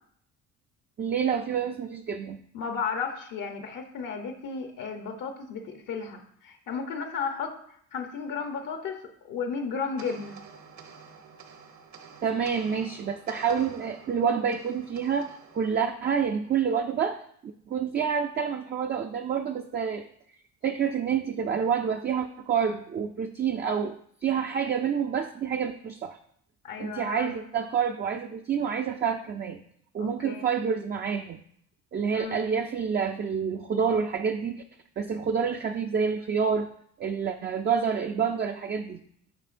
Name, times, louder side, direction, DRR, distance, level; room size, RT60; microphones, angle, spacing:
voice 1, 1.0-2.4 12.2-17.2 17.7-20.1 20.6-24.0 24.2-26.2 26.8-29.6 29.9-31.4 31.9-34.6 35.0-36.7 37.0-39.0, right 7 dB, 30° right, 5 dB, 0.4 m, -28 dB
voice 2, 2.5-7.5 7.9-10.4 26.6-27.3 30.0-30.5 32.1-32.4, left 5 dB, 70° left, 5 dB, 0.8 m, -34 dB
sound 1, 10.0-16.6, right 6 dB, 55° right, 0.9 m, -49 dB
7.7 x 5.1 x 2.5 m, 0.65 s
cardioid pair, 85°, 34 cm